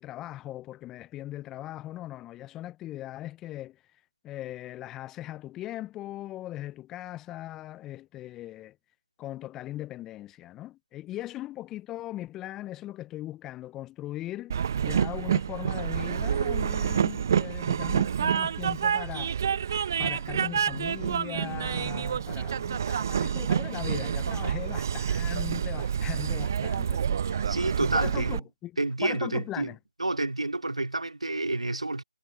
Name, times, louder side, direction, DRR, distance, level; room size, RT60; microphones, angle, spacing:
voice 1, 0.0-3.8 4.2-8.8 9.2-14.6 14.8-19.4 20.0-27.5 27.8-28.7 29.0-29.8, left 14 dB, 10° left, 0.5 m, -39 dB
Train, 14.5-28.4, right 8 dB, 30° right, 0.6 m, -28 dB
voice 2, 27.5-28.4 28.8-29.7 30.0-32.0, right 2 dB, 75° right, 2.4 m, -29 dB
figure-of-eight pair, 155°, 3 cm